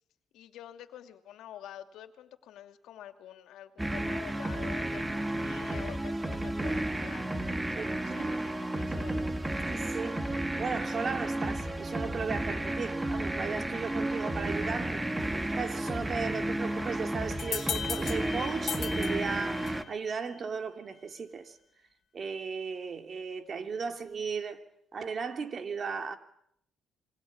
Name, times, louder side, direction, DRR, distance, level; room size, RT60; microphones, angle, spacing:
voice 1, 0.3-9.3, left 11 dB, 85° left, 2.7 m, -48 dB
sound 1, 3.8-19.8, right 1 dB, 15° right, 2.5 m, -32 dB
voice 2, 7.8-8.4 9.7-10.2 10.6-15.0 15.6-21.6 22.1-24.6 24.9-26.2, right 5 dB, 45° right, 3.1 m, -36 dB
sound 2, 17.4-20.0, left 8 dB, 60° left, 2.9 m, -37 dB
27.5 x 22.5 x 8.8 m
cardioid pair, 90°, 0 cm